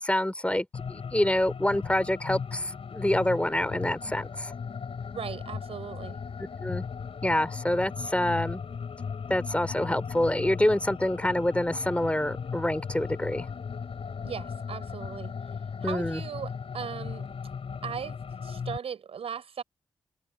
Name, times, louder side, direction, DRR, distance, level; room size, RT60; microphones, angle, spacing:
voice 1, 0.0-4.5 6.6-6.8 7.2-8.6 9.3-13.4 15.8-16.2, left 1 dB, 10° left, 3.2 m, -27 dB
sound 1, 0.7-18.8, left 6 dB, 70° left, 5.9 m, -37 dB
voice 2, 5.1-6.2 14.2-15.4 15.8-17.3 17.8-18.2 18.4-19.6, right 7 dB, 80° right, 6.3 m, -38 dB
supercardioid pair, 45°, 10 cm